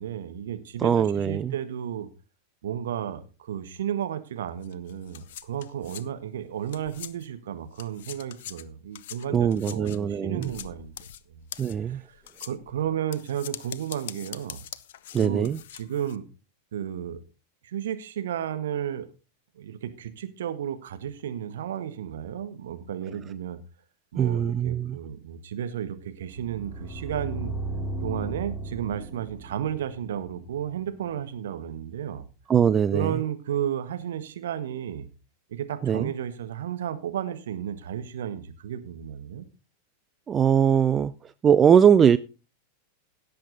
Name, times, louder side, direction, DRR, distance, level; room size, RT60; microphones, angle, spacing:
voice 1, 0.0-2.1 2.6-10.9 11.3-11.4 11.9-14.6 15.2-16.2 16.7-17.2 17.6-19.1 19.5-23.6 24.1-27.5 28.0-32.2 32.9-35.1 35.5-39.5, right 9 dB, 60° right, 1.5 m, -33 dB
voice 2, 0.8-1.5 9.3-10.5 11.6-12.0 15.1-15.6 24.2-25.0 32.5-33.1 35.8-36.1 40.3-42.2, right 8 dB, 25° right, 0.5 m, -21 dB
sound 1, 4.6-7.4 7.7-16.2, left 11 dB, 55° left, 0.7 m, -43 dB
sound 2, 26.2-31.2, right 2 dB, 5° left, 2.5 m, -36 dB
16.5 x 7.7 x 4.0 m
figure-of-eight pair, 90°, 0 cm